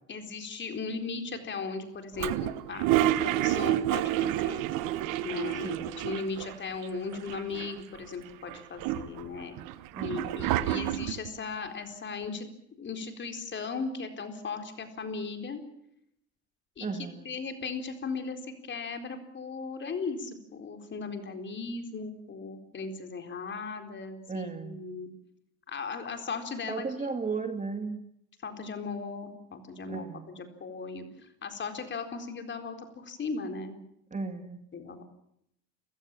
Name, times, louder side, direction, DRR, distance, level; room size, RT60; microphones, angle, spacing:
voice 1, 0.1-2.9 3.2-4.6 5.2-9.6 10.0-12.5 12.8-15.6 16.8-25.1 25.7-27.1 28.4-30.1 30.4-33.8 34.7-35.0, left 4 dB, 35° left, 6 dB, 4.1 m, -37 dB
Toilet flush, 2.2-6.5 6.8-6.9 7.1-8.0 8.5-11.3, right 13 dB, 75° right, 1.4 m, -29 dB
voice 2, 9.9-10.3 16.8-17.3 24.3-24.9 26.7-28.0 29.9-30.3 34.1-34.6, right 4 dB, 20° right, 8 dB, 2.3 m, -35 dB
30.0 x 16.5 x 7.4 m, 0.76 s
supercardioid pair, 100°, 32 cm